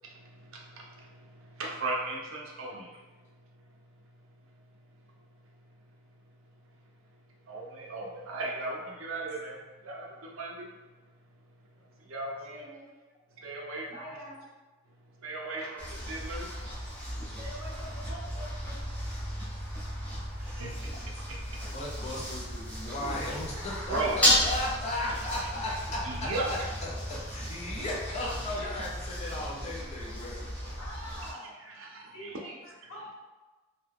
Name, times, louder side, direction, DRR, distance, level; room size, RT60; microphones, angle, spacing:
voice 1, 0.1-3.0 7.5-10.7 12.1-12.7 13.4-14.0 15.2-16.7 20.4-21.0 21.3-21.6 23.9-24.2 25.1-25.5 26.0-26.7 31.4-32.4, right 2 dB, 65° right, -1 dB, 0.6 m, -37 dB
voice 2, 12.4-12.9 13.9-14.5 17.4-18.9 21.1-21.2 23.5-24.0 24.3-24.4 25.5-25.7 28.1-28.7 29.6-29.8 30.8-31.5 32.1-32.5 32.9-33.2, equal, 70° left, -8 dB, 1.3 m, -45 dB
sound 1, 15.8-31.3, equal, 5° left, 0.8 m, -34 dB
voice 3, 21.7-30.4, left 1 dB, 30° left, -4 dB, 0.5 m, -36 dB
2.7 x 2.2 x 3.5 m, 1.2 s
head